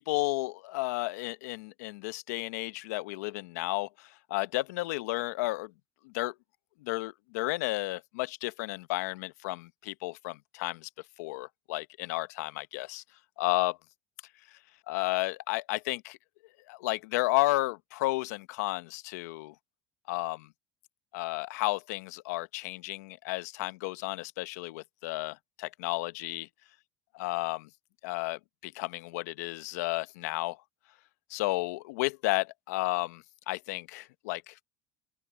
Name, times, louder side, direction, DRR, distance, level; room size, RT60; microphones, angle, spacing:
voice 1, 0.0-5.7 6.0-6.3 6.8-10.9 11.2-13.0 13.4-13.8 14.9-16.2 16.7-19.5 20.1-20.5 21.1-26.5 27.2-27.7 28.0-30.6 31.3-34.5, left 21 dB, 80° left, 0.9 m, -32 dB
open air
supercardioid pair, 90°, 9 cm